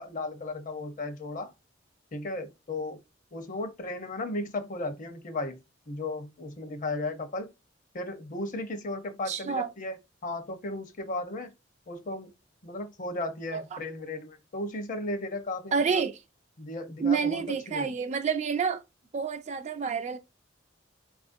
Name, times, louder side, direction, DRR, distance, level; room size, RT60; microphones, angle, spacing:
voice 1, 0.0-1.5 2.1-3.0 3.3-5.6 5.9-7.5 7.9-10.0 10.2-11.5 11.9-12.3 12.6-16.0 16.6-17.9, left 2 dB, 45° left, 0.7 m, -35 dB
voice 2, 9.3-9.7 13.5-13.8 15.7-16.1 17.0-18.8 19.1-20.2, right 6 dB, 35° right, 0.3 m, -28 dB
4.2 x 2.4 x 2.5 m
head